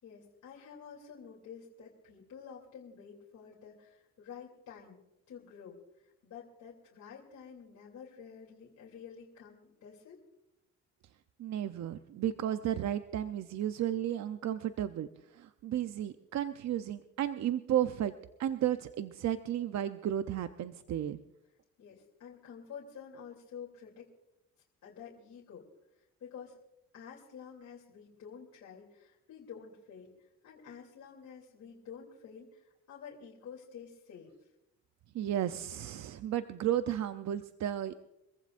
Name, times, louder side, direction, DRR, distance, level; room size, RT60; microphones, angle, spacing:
voice 1, 0.0-5.0 5.3-5.8 6.2-10.2 21.8-24.1 24.8-25.7 26.2-26.6 26.9-34.3, left 7 dB, 65° left, -4 dB, 3.1 m, -50 dB
voice 2, 11.4-15.1 15.3-18.1 18.4-21.2 35.1-37.9, right 11 dB, 65° right, 10 dB, 0.7 m, -33 dB
25.5 x 15.0 x 2.6 m, 0.90 s
cardioid pair, 90°, 30 cm